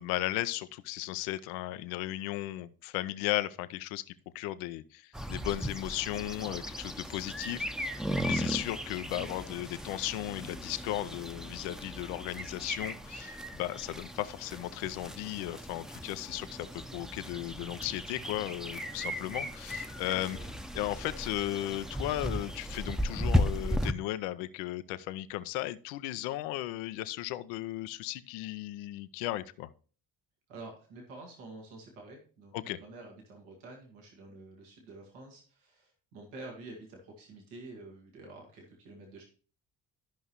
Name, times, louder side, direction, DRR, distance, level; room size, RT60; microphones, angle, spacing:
voice 1, 0.0-4.0 4.3-7.7 7.9-20.4 20.7-29.7 32.5-32.8, left 15 dB, 90° left, 14 dB, 0.6 m, -36 dB
sound 1, 5.1-23.9, equal, ahead, 0.6 m, -36 dB
voice 2, 20.1-20.6 30.5-39.2, right 2 dB, 90° right, 0 dB, 1.7 m, -49 dB
13.0 x 5.4 x 2.9 m, 0.40 s
hypercardioid pair, 50°, 47 cm